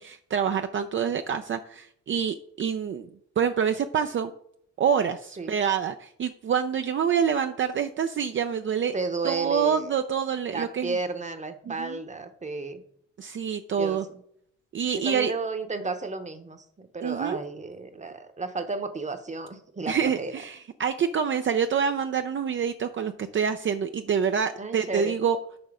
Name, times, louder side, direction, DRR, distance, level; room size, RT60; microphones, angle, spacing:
voice 1, 0.0-3.1 3.4-4.3 4.8-8.9 9.2-11.0 11.7-12.0 13.2-14.0 14.7-15.3 17.0-17.4 19.9-25.4, right 7 dB, 40° right, 7 dB, 0.5 m, -26 dB
voice 2, 8.9-9.9 10.5-12.8 13.8-14.2 14.9-20.3 24.6-25.2, right 3 dB, 25° right, 9 dB, 0.9 m, -33 dB
6.0 x 5.3 x 4.9 m, 0.69 s
cardioid pair, 90°, 30 cm